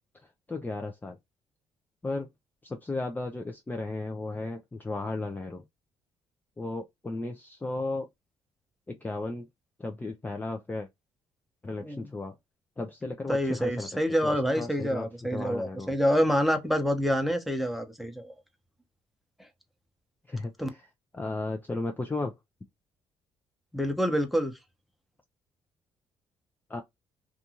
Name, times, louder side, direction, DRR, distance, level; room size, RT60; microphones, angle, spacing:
voice 1, 0.5-1.2 2.0-2.3 2.6-5.6 6.6-8.1 8.9-9.5 9.8-10.9 11.6-12.3 12.8-13.9 14.2-15.9 20.3-20.9 21.1-22.3 26.7-26.8, left 2 dB, 15° left, 0.5 m, -34 dB
voice 2, 13.3-18.3 20.6-20.7 23.7-24.5, equal, ahead, 0.8 m, -27 dB
2.5 x 2.4 x 2.8 m
supercardioid pair, 65°, 12 cm